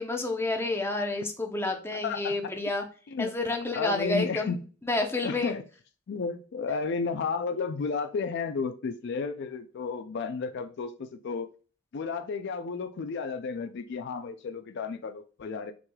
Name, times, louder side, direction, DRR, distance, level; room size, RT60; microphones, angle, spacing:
voice 1, 0.0-2.8 3.2-5.5, left 2 dB, 10° left, 0.7 m, -30 dB
voice 2, 1.9-2.3 3.1-3.3 3.7-4.6 5.2-5.6 6.1-11.5 11.9-15.7, left 5 dB, 60° left, 0.4 m, -32 dB
6.0 x 3.2 x 2.3 m
head